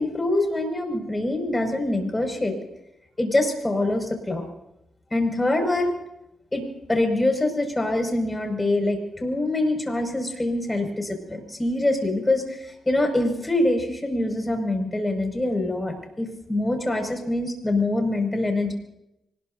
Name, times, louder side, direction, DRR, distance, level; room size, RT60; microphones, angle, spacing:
voice 1, 0.0-2.6 3.2-4.4 5.1-5.9 6.5-18.7, left 2 dB, 20° left, 3 dB, 5.9 m, -24 dB
25.0 x 20.5 x 2.7 m, 0.84 s
supercardioid pair, 50°, 0 cm